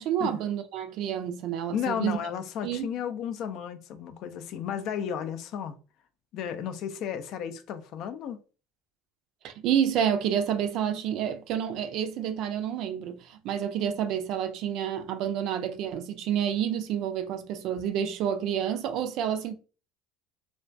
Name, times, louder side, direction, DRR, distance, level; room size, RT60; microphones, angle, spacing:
voice 1, 0.0-2.2 2.6-2.9 9.4-19.5, right 9 dB, 60° right, 0.4 m, -29 dB
voice 2, 1.7-5.8 6.3-8.4, left 8 dB, 60° left, 0.3 m, -33 dB
2.2 x 2.2 x 2.5 m
hypercardioid pair, 85°, 0 cm